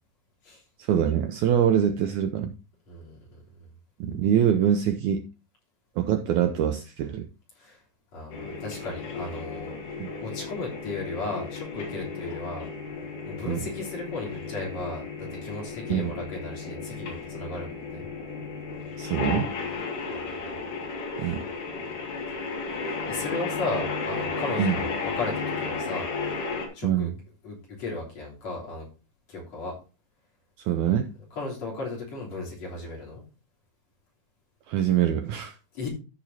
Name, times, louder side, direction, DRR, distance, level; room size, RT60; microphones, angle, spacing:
voice 1, 0.8-2.5 4.0-5.2 6.0-7.3 10.0-10.1 13.5-13.7 15.9-16.1 19.0-19.5 21.2-21.4 24.6-24.8 26.8-27.1 30.7-31.1 34.7-35.5, right 9 dB, 80° right, 1.8 m, -24 dB
voice 2, 2.9-3.2 7.6-7.8 8.1-9.8 10.2-12.7 13.2-15.0 15.3-18.0 20.1-20.3 21.2-21.3 22.8-25.3 25.6-26.1 26.7-27.1 27.4-28.9 29.3-29.7 31.4-33.2 35.7-35.9, left 3 dB, 50° left, 4.5 m, -35 dB
sound 1, 8.3-26.7, left 4 dB, 70° left, 3.7 m, -34 dB
14.0 x 6.9 x 2.8 m
omnidirectional pair, 4.0 m